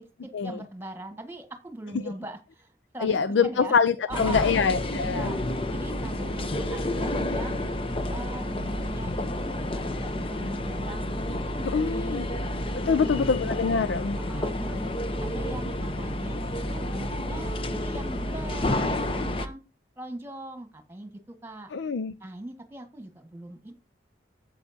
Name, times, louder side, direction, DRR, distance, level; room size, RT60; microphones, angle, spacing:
voice 1, 0.0-3.8 4.1-4.6 5.0-5.4 5.7-7.7 8.1-12.3 12.9-13.2 14.1-14.8 15.2-19.6 20.0-21.7 22.2-23.7, right 1 dB, 15° right, 1.6 m, -41 dB
voice 2, 3.0-5.3 11.6-12.3 12.7-14.2 21.7-22.1, left 5 dB, 85° left, 0.4 m, -25 dB
sound 1, 4.1-19.5, left 1 dB, 30° left, 0.7 m, -30 dB
13.0 x 8.3 x 2.7 m
head